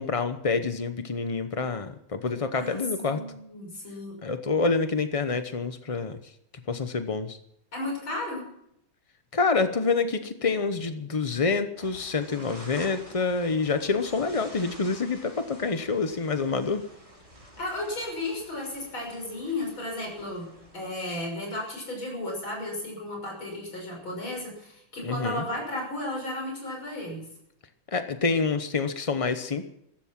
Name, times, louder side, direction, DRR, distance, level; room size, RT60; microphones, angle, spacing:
voice 1, 0.0-3.2 4.2-6.2 6.7-7.4 9.3-16.8 25.0-25.4 27.9-29.6, left 4 dB, 65° left, 9 dB, 0.3 m, -27 dB
voice 2, 2.5-4.2 7.7-8.5 17.6-20.5 20.7-27.2, left 1 dB, 85° left, 1 dB, 7.0 m, -34 dB
sound 1, 11.8-20.9, right 1 dB, 20° right, 4.7 m, -48 dB
15.0 x 14.5 x 6.0 m, 0.76 s
omnidirectional pair, 2.2 m